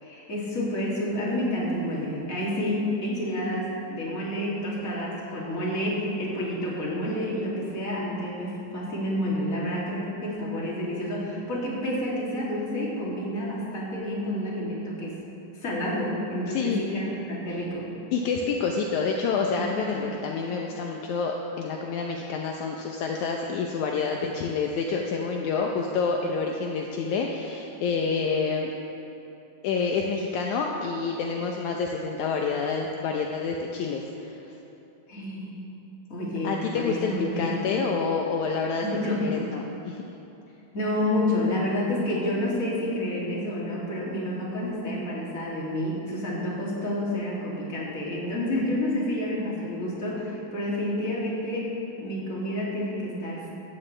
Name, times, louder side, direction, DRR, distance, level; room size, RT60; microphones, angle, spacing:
voice 1, 0.0-15.2 15.5-17.9 19.6-20.0 35.1-35.5 36.1-37.6 38.8-39.3 40.7-51.7 52.0-53.5, left 1 dB, 25° left, -5 dB, 2.5 m, -29 dB
voice 2, 16.5-16.8 18.1-28.7 29.6-34.4 36.4-38.8 39.2-40.0, left 5 dB, 80° left, 1 dB, 1.7 m, -28 dB
15.5 x 15.0 x 3.3 m, 3.0 s
omnidirectional pair, 4.3 m